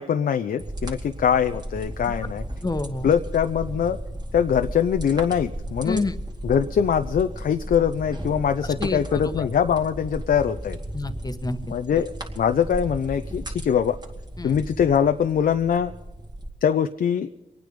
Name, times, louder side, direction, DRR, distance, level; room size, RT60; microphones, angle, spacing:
voice 1, 0.0-2.4 3.0-4.0 4.3-6.0 6.4-10.8 11.7-14.0 14.4-15.9 16.6-17.3, left 8 dB, 70° left, 8 dB, 0.6 m, -23 dB
sound 1, 0.6-16.5, right 1 dB, 25° right, 2.4 m, -35 dB
voice 2, 2.6-3.1 5.8-6.2 8.8-9.5 10.9-11.6 11.9-12.0 14.4-14.6, left 2 dB, 25° left, 11 dB, 1.2 m, -29 dB
23.5 x 9.4 x 5.2 m, 1.0 s
cardioid pair, 60°, 15 cm